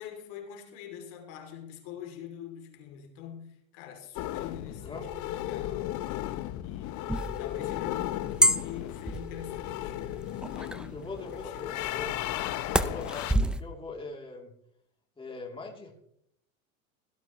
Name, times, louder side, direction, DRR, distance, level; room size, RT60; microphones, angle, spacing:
voice 1, 0.0-6.0 6.6-11.7, left 9 dB, 60° left, 3.0 m, -44 dB
sound 1, 4.2-13.3, left 14 dB, 45° left, 0.9 m, -35 dB
sound 2, 7.1-13.6, right 1 dB, ahead, 0.5 m, -30 dB
voice 2, 10.9-12.1 12.8-14.5 15.2-15.9, left 3 dB, 15° left, 3.0 m, -41 dB
17.0 x 12.5 x 3.1 m
supercardioid pair, 110°, 40 cm